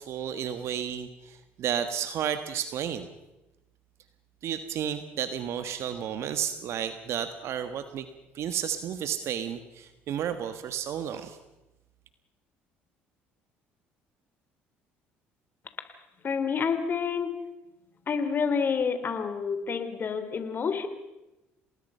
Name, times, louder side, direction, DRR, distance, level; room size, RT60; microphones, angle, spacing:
voice 1, 0.0-3.1 4.4-8.1 8.3-11.4, right 9 dB, 60° right, 10 dB, 1.5 m, -32 dB
voice 2, 16.2-17.4 18.1-20.9, left 6 dB, 40° left, 9 dB, 3.2 m, -28 dB
28.5 x 19.0 x 5.6 m, 0.99 s
supercardioid pair, 75°, 5 cm